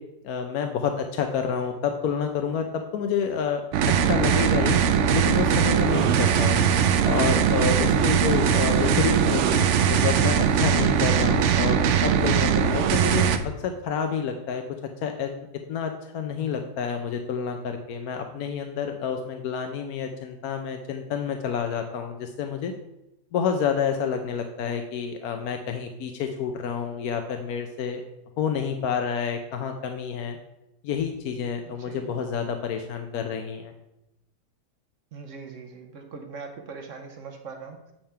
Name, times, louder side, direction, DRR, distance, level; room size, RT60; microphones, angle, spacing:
voice 1, 0.2-2.7 2.9-3.6 4.0-4.8 5.1-6.6 7.0-13.3 13.6-14.6 15.0-15.3 15.7-22.7 23.3-28.0 28.4-30.4 30.8-33.7, left 7 dB, 70° left, 5 dB, 1.0 m, -28 dB
sound 1, 3.7-13.4, right 7 dB, 90° right, 0.6 m, -21 dB
voice 2, 31.7-32.1 35.1-37.9, right 4 dB, 60° right, 5 dB, 1.0 m, -41 dB
8.6 x 3.5 x 5.5 m, 0.91 s
omnidirectional pair, 1.8 m